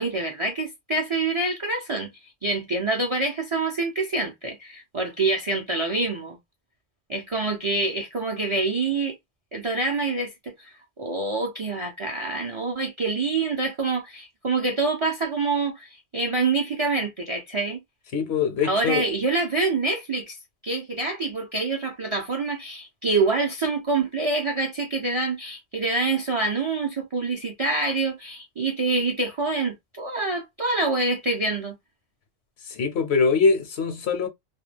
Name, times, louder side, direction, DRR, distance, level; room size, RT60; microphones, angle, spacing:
voice 1, 0.0-2.1 2.4-6.4 7.1-9.2 9.5-10.7 11.0-17.8 18.6-20.4 20.6-31.8, right 3 dB, 40° right, 0.4 m, -26 dB
voice 2, 18.1-19.0 32.7-34.3, left 5 dB, 70° left, 0.8 m, -22 dB
2.3 x 2.1 x 3.2 m
omnidirectional pair, 1.2 m